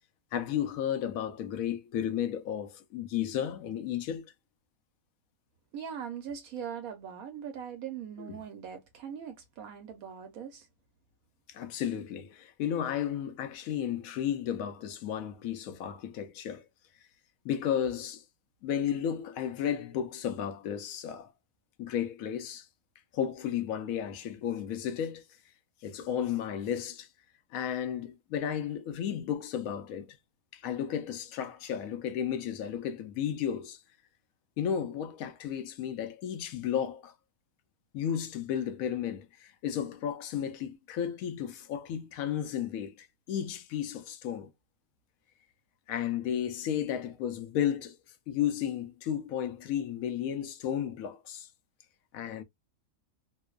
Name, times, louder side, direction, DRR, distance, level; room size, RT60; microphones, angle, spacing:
voice 1, 0.3-4.3 8.2-8.4 11.5-16.7 17.4-18.2 18.6-21.3 21.8-22.7 23.1-25.2 25.8-27.1 27.5-30.2 30.5-33.8 34.6-37.1 37.9-44.5 45.9-48.0 48.3-51.5 52.1-52.4, left 9 dB, 75° left, 1.0 m, -33 dB
voice 2, 5.7-10.7, right 8 dB, 75° right, 1.1 m, -41 dB
2.9 x 2.0 x 2.2 m
omnidirectional pair, 1.6 m